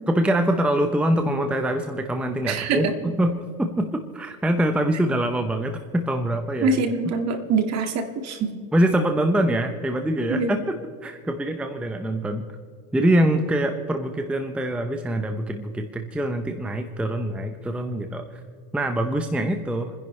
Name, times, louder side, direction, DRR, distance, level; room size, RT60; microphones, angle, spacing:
voice 1, 0.1-6.8 8.7-10.8 11.0-12.4 12.9-18.4 18.7-19.9, right 1 dB, 5° right, 6 dB, 0.7 m, -24 dB
voice 2, 2.5-2.9 6.6-8.5 10.3-10.6, right 4 dB, 40° right, 6 dB, 1.9 m, -24 dB
29.5 x 10.5 x 3.3 m, 2.2 s
supercardioid pair, 125°, 42 cm